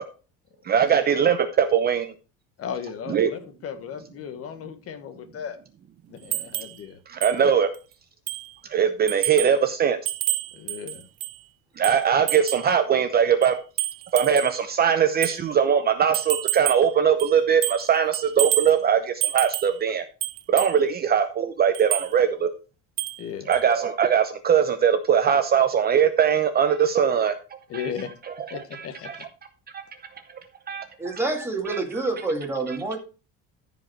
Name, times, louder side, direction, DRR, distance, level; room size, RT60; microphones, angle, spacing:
voice 1, 0.6-2.1 3.1-3.3 7.1-7.7 8.7-10.0 11.8-13.6 14.1-20.0 20.5-22.5 23.5-27.3 27.7-27.9 28.7-29.2 30.7-30.8 31.7-31.8, right 8 dB, 30° right, 8 dB, 0.8 m, -21 dB
voice 2, 2.6-5.6 6.1-7.0 10.5-11.1 23.2-23.5 27.7-28.1 28.5-29.3, left 7 dB, 45° left, 9 dB, 1.3 m, -36 dB
sound 1, 6.3-6.8 7.2-7.4 7.7-7.8 8.3-8.5 9.1-9.6 10.1-11.4 11.8-12.7 13.4-14.6 15.2-15.4 16.1-16.9 17.2-17.9 18.1-18.8 19.2-19.8 20.2-20.8 21.7-22.1 23.0-23.2 23.5-23.6, right 17 dB, 85° right, 1.0 m, -29 dB
voice 3, 31.0-33.0, right 3 dB, 5° right, 2 dB, 2.2 m, -27 dB
14.0 x 5.2 x 4.5 m, 0.34 s
cardioid pair, 165°, 33 cm